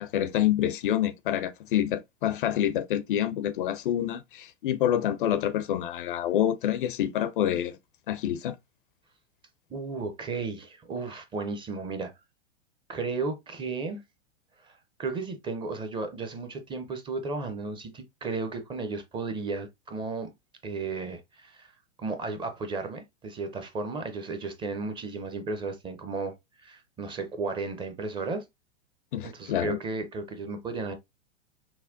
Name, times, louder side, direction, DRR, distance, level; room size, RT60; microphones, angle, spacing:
voice 1, 0.0-7.8 8.1-8.6 29.1-29.8, left 11 dB, 45° left, 0.5 m, -27 dB
voice 2, 9.7-12.1 12.9-14.0 14.6-20.3 20.6-21.7 22.0-28.5 29.2-30.9, right 3 dB, 15° right, 0.5 m, -34 dB
5.7 x 2.2 x 2.5 m
figure-of-eight pair, 100°, 36 cm